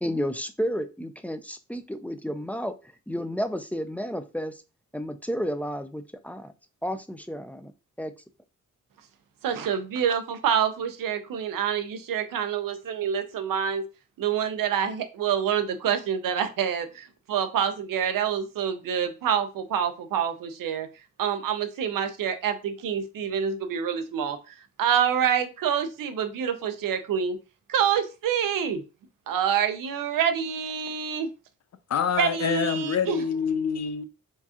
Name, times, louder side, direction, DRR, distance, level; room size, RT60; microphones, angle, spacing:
voice 1, 0.0-2.7 3.1-4.5 4.9-6.5 6.8-7.7 8.0-8.1, equal, 5° left, 0.4 m, -31 dB
voice 2, 9.4-13.8 14.2-20.9 21.2-27.4 27.7-28.8 29.3-31.3 32.2-33.2, right 8 dB, 90° right, 0.7 m, -27 dB
voice 3, 31.9-34.0, left 7 dB, 55° left, 0.6 m, -26 dB
4.6 x 2.4 x 2.8 m
cardioid pair, 80°, 32 cm